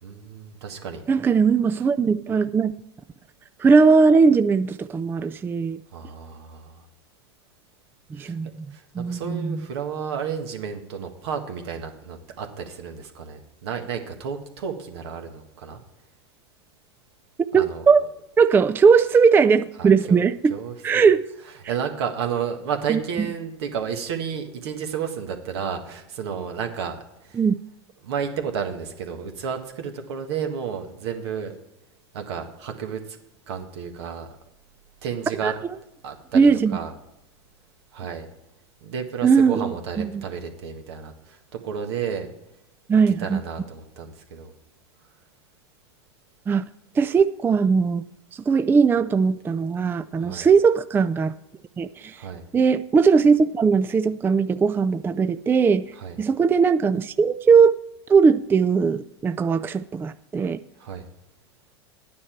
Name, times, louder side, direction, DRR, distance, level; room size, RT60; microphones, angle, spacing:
voice 1, 0.0-1.0 5.9-6.9 8.2-8.4 8.7-15.8 17.5-17.8 19.8-21.1 21.7-27.0 27.2-27.4 28.0-31.6 32.1-33.2 33.5-34.3 35.0-35.5 36.0-36.9 37.9-38.3 38.8-42.3 43.2-44.5 50.2-50.5 52.1-52.4 56.0-56.2 60.8-61.1, right 7 dB, 70° right, 1.6 m, -32 dB
voice 2, 1.1-2.7 3.6-5.8 8.1-9.6 17.5-18.0 18.4-20.5 20.8-21.2 22.9-23.0 27.4-27.6 35.4-35.5 36.3-36.8 39.2-40.2 42.9-43.4 46.5-46.6 47.0-48.0 48.3-51.3 51.8-52.2 52.5-55.9 56.2-57.8 58.1-60.6, right 5 dB, 15° right, 0.3 m, -19 dB
11.0 x 9.5 x 4.5 m
hypercardioid pair, 100°, 14 cm